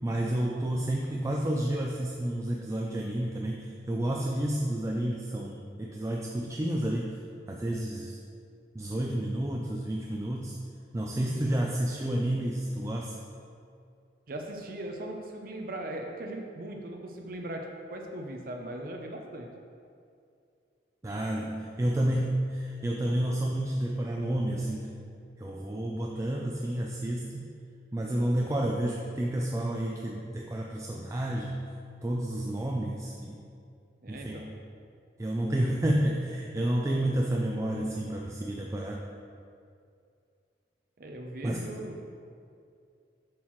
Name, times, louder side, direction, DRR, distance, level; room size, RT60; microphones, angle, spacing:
voice 1, 0.0-7.2 7.5-8.2 8.7-10.6 10.9-13.2 21.0-24.9 25.4-27.5 27.9-31.7 32.0-33.4 34.1-34.5 35.2-39.0 41.4-41.7, right 1 dB, 15° right, -1 dB, 0.3 m, -30 dB
voice 2, 14.3-19.5 34.0-34.5 41.0-42.0, right 1 dB, 50° right, 2 dB, 0.6 m, -39 dB
7.4 x 6.3 x 3.1 m, 2.4 s
head